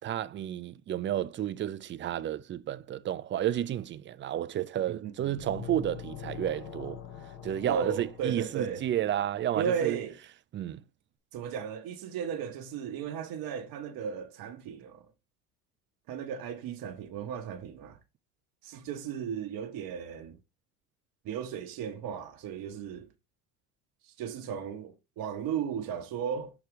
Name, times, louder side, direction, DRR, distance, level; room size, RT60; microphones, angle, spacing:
voice 1, 0.0-7.0 7.4-10.0 10.5-10.8, right 11 dB, 25° right, 0.4 m, -32 dB
voice 2, 4.9-5.4 7.7-8.9 9.6-10.2 11.3-15.1 16.1-18.0 18.6-20.4 21.2-23.1 24.0-26.5, right 7 dB, 50° right, 1.0 m, -35 dB
sound 1, 5.4-9.1, left 9 dB, 55° left, 1.3 m, -44 dB
6.0 x 3.2 x 4.9 m
hypercardioid pair, 70°, 46 cm